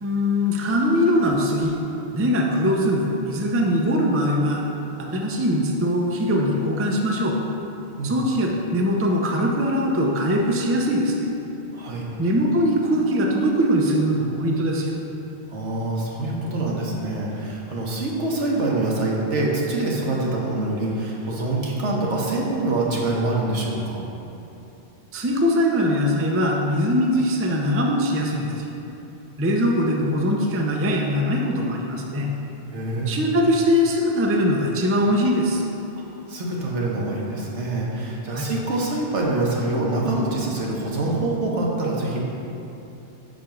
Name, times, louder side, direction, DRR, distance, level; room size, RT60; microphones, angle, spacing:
voice 1, 0.0-1.8 2.1-4.6 5.0-7.4 8.0-11.3 12.2-14.9 25.1-28.7 29.4-32.3 33.1-35.6 38.3-38.5, equal, 20° right, 0 dB, 0.4 m, -21 dB
voice 2, 11.7-12.0 15.5-24.0 32.7-33.1 36.3-42.2, right 2 dB, 80° right, -3 dB, 1.4 m, -25 dB
5.1 x 5.1 x 5.7 m, 2.9 s
omnidirectional pair, 1.2 m